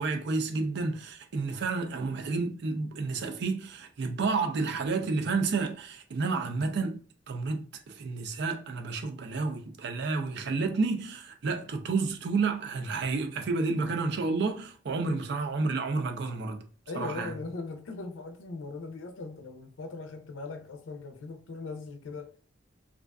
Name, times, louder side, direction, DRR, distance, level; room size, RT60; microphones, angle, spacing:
voice 1, 0.0-16.6 16.9-17.4, right 4 dB, 60° right, 0.4 m, -30 dB
voice 2, 16.9-22.3, left 3 dB, 85° left, 0.5 m, -39 dB
2.4 x 2.3 x 2.2 m
head